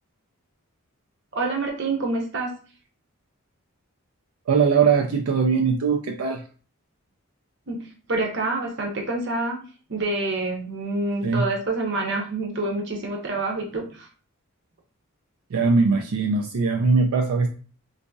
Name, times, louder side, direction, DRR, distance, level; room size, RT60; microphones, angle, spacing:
voice 1, 1.3-2.6 7.7-9.6 9.9-14.1, right 2 dB, 50° right, 1 dB, 0.8 m, -27 dB
voice 2, 4.5-6.4 11.2-11.5 15.5-17.5, right 5 dB, 80° right, 3 dB, 0.4 m, -21 dB
3.9 x 2.6 x 2.3 m, 0.38 s
head